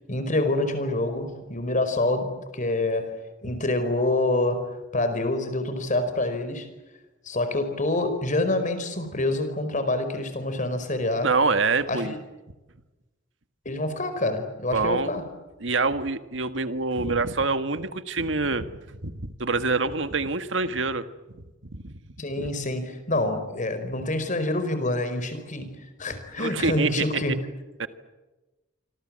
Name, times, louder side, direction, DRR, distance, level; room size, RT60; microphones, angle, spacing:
voice 1, 0.1-6.7 7.2-11.4 11.9-12.2 13.6-15.3 22.2-27.3, left 2 dB, 40° left, 9 dB, 4.9 m, -27 dB
voice 2, 11.2-12.1 14.7-15.1 15.6-21.0 21.3-21.4 21.8-21.9 22.4-22.5 26.4-27.2 27.8-27.9, right 3 dB, 80° right, 10 dB, 1.7 m, -26 dB
27.0 x 26.5 x 7.6 m, 1.1 s
head